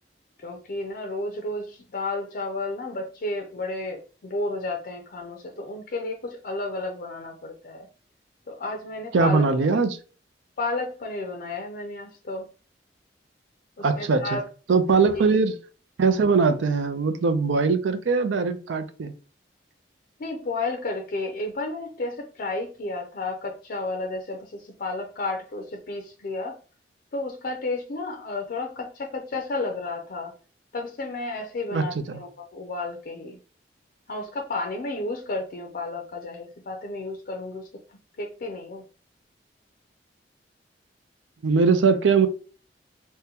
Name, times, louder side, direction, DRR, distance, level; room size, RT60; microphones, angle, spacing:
voice 1, 0.4-7.9 8.5-9.5 10.6-12.5 13.8-14.4 20.2-26.6 27.1-30.3 30.7-33.4 34.1-37.7 38.2-38.8, left 2 dB, 55° left, 0.4 m, -32 dB
voice 2, 9.1-10.0 13.8-14.4 14.7-15.6 16.0-19.1 31.7-32.2 41.4-42.3, right 4 dB, 90° right, 0.4 m, -21 dB
3.6 x 2.1 x 2.8 m
head